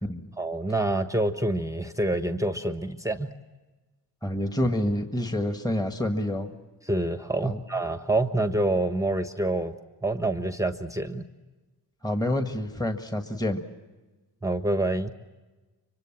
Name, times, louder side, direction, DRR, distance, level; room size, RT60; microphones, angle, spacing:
voice 1, 0.4-3.3 6.8-11.2 14.4-15.1, right 2 dB, 5° right, 9 dB, 1.2 m, -27 dB
voice 2, 4.2-6.5 7.4-7.6 12.0-13.6, left 1 dB, 10° left, 7 dB, 1.7 m, -28 dB
25.0 x 23.5 x 7.4 m, 1.2 s
cardioid pair, 80°, 43 cm